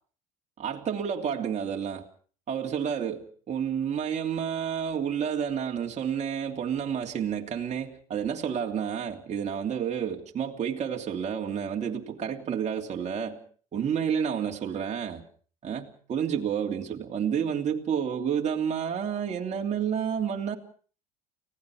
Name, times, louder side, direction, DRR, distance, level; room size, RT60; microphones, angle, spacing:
voice 1, 0.6-2.0 2.5-13.4 13.7-15.2 15.6-20.6, right 8 dB, 35° right, 3.0 m, -30 dB
30.0 x 17.5 x 4.9 m
supercardioid pair, 90°, 19 cm